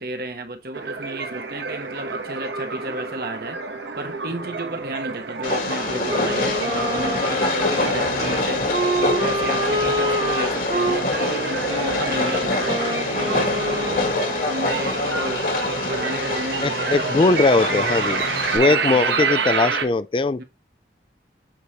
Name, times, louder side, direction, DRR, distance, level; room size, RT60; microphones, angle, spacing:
voice 1, 0.0-3.6 4.0-8.6 9.0-14.0 14.4-15.5 15.9-17.3 18.5-19.6 20.4-20.5, right 2 dB, 55° right, 1.3 m, -33 dB
sound 1, 0.7-19.9, right 4 dB, 85° right, 1.3 m, -29 dB
Train, 5.4-18.6, left 2 dB, 50° left, 2.2 m, -25 dB
Wind instrument woodwind instrument, 6.1-14.5, right 1 dB, 30° right, 1.6 m, -27 dB
voice 2, 16.6-18.2 18.5-20.4, left 3 dB, 30° left, 0.4 m, -20 dB
8.1 x 4.9 x 3.1 m
head